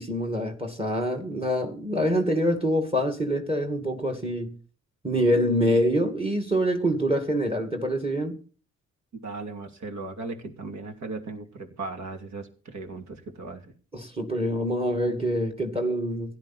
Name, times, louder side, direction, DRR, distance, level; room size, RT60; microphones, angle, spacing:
voice 1, 0.0-4.6 5.0-8.4 13.9-16.4, equal, 20° right, 2.4 m, -25 dB
voice 2, 9.2-13.7, right 3 dB, 65° right, 2.9 m, -37 dB
16.5 x 11.5 x 4.3 m
cardioid pair, 100°, 30 cm